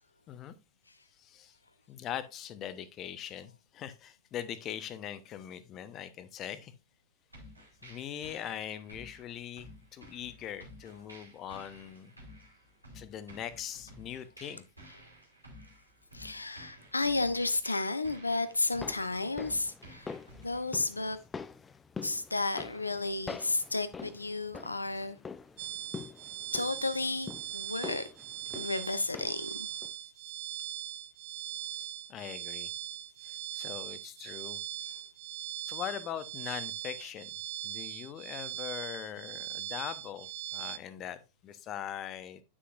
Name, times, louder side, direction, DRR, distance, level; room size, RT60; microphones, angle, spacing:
voice 1, 1.2-1.5 1.9-6.7 7.8-9.7 9.9-12.1 12.9-14.6 31.7-32.7 33.2-34.6 35.7-37.3 37.6-42.4, left 10 dB, 30° left, 0.8 m, -41 dB
sound 1, 7.3-20.7, equal, 85° right, 3.1 m, -53 dB
voice 2, 16.1-20.1 20.4-21.2 22.0-25.2 26.5-28.0 28.5-29.8 34.8-35.0, left 3 dB, 80° left, 0.7 m, -32 dB
sound 2, 18.5-29.5 29.8-29.9, left 5 dB, 15° left, 0.5 m, -45 dB
sound 3, 25.6-40.8, right 12 dB, 50° right, 0.6 m, -40 dB
9.5 x 6.2 x 2.5 m
figure-of-eight pair, 90°, 0 cm